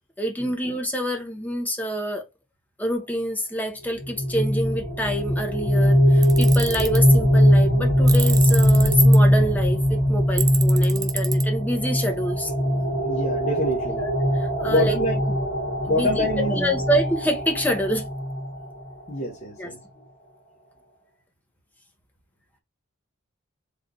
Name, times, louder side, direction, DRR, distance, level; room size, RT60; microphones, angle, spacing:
voice 1, 0.2-2.2 2.8-12.5 14.0-15.0 15.8-18.1 19.6-19.7, equal, 10° left, 1.0 m, -27 dB
sound 1, 4.0-18.9, equal, 50° left, 1.5 m, -20 dB
Tools, 6.2-7.0 8.1-9.2 10.4-11.4, right 7 dB, 15° right, 0.4 m, -29 dB
voice 2, 12.7-14.0 14.7-15.4 15.9-16.8 19.1-19.8, left 1 dB, 30° left, 1.0 m, -26 dB
4.0 x 3.3 x 3.8 m
head